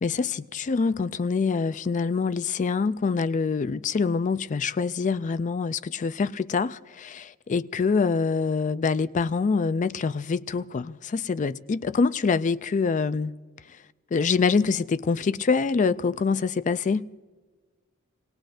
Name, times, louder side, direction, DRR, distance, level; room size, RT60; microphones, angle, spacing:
voice 1, 0.0-13.4 14.1-17.0, left 5 dB, 35° left, 0.4 m, -25 dB
27.5 x 19.5 x 2.5 m
head